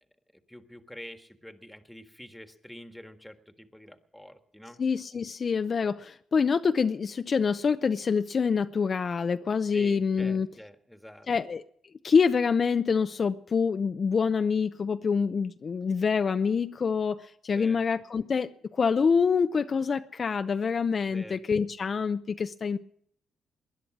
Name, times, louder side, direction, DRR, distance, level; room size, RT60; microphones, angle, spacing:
voice 1, 0.3-4.8 9.7-11.3 17.5-17.8 21.1-21.4, equal, 5° left, 7 dB, 1.6 m, -46 dB
voice 2, 4.8-10.5 11.3-11.6 12.0-22.8, left 5 dB, 50° left, 9 dB, 0.5 m, -26 dB
20.0 x 10.5 x 6.1 m, 0.66 s
cardioid pair, 75°, 0 cm